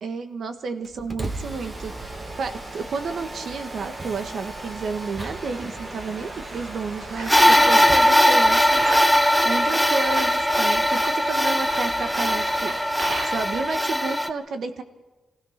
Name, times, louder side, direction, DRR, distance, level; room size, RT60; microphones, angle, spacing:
voice 1, 0.0-1.9 2.4-8.9 9.4-12.7 13.2-14.8, right 4 dB, 65° right, 9 dB, 1.6 m, -31 dB
Mechanisms, 0.8-8.1, right 2 dB, 25° right, 1.8 m, -35 dB
sound 1, 7.0-13.7, right 2 dB, 80° right, 3.9 m, -36 dB
sound 2, 7.3-14.3, equal, ahead, 0.8 m, -19 dB
27.0 x 17.0 x 5.9 m, 1.1 s
wide cardioid pair, 140°, 0 cm